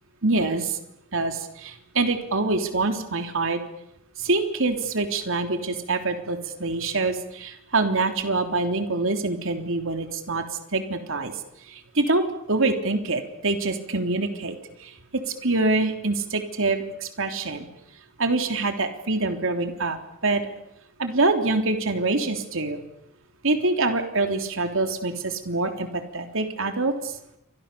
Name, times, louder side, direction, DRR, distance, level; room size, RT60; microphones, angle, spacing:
voice 1, 0.2-0.8 1.1-3.6 4.2-10.5 10.7-11.3 11.7-17.7 18.2-20.0 20.2-20.4 21.0-22.8 23.4-27.1, right 3 dB, 65° right, 5 dB, 3.5 m, -25 dB
29.0 x 25.5 x 7.0 m, 0.78 s
head